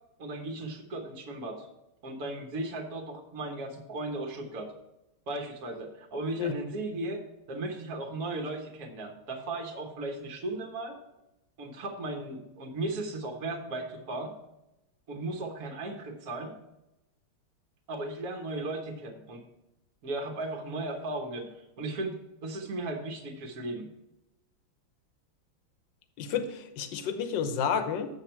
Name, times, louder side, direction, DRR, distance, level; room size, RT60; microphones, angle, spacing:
voice 1, 0.2-1.7 2.0-4.7 5.3-7.2 7.5-11.0 11.6-14.3 15.1-16.5 17.9-19.4 20.0-21.5 21.8-23.9, right 2 dB, 50° right, 3 dB, 1.4 m, -36 dB
voice 2, 26.2-28.1, left 7 dB, 65° left, 8 dB, 1.4 m, -30 dB
8.0 x 7.4 x 4.4 m, 0.92 s
omnidirectional pair, 2.3 m